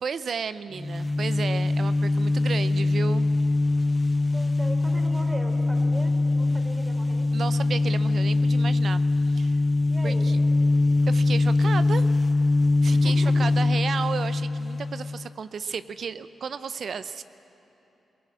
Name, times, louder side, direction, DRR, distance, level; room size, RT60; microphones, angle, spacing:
voice 1, 0.0-3.3 7.3-9.6 10.0-10.4 11.1-12.1 12.8-17.2, right 6 dB, 65° right, 13 dB, 0.6 m, -33 dB
sound 1, 0.7-15.3, left 2 dB, 20° left, 0.4 m, -23 dB
voice 2, 4.3-7.3 9.9-10.3 12.9-13.5, right 1 dB, 25° right, 3 dB, 4.0 m, -39 dB
21.5 x 18.0 x 8.7 m, 2.9 s
supercardioid pair, 45°, 0 cm